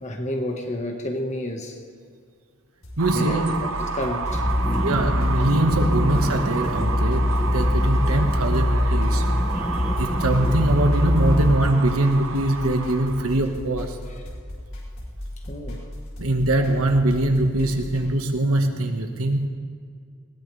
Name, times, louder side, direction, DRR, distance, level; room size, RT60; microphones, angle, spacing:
voice 1, 0.0-1.8 3.1-5.1 14.1-14.2 15.5-15.9, left 1 dB, 35° left, 3 dB, 1.6 m, -31 dB
sound 1, 2.8-18.1, left 1 dB, 75° left, 5.0 m, -37 dB
sound 2, 3.0-13.3, right 4 dB, 70° right, 1.0 m, -32 dB
voice 2, 3.0-3.5 4.8-14.0 16.2-19.5, right 1 dB, 90° right, 4 dB, 1.7 m, -22 dB
sound 3, 4.3-11.6, left 1 dB, ahead, 1.3 m, -23 dB
20.5 x 19.5 x 3.5 m, 2.1 s
head